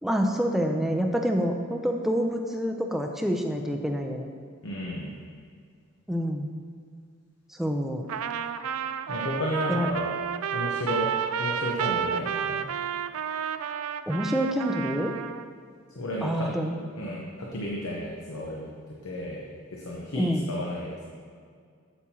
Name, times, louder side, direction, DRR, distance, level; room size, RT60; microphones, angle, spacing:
voice 1, 0.0-4.3 6.1-6.5 7.6-8.0 9.7-9.9 14.1-15.1 16.2-16.7 20.1-20.5, equal, ahead, 3 dB, 0.4 m, -27 dB
voice 2, 4.6-5.1 9.1-10.1 10.5-11.1 11.4-12.7 16.0-16.5 17.0-18.7 19.0-19.4 19.7-21.1, left 1 dB, 75° left, -3 dB, 0.9 m, -32 dB
Trumpet, 8.1-15.5, right 8 dB, 85° right, 0.3 m, -31 dB
8.3 x 7.4 x 2.9 m, 2.1 s
head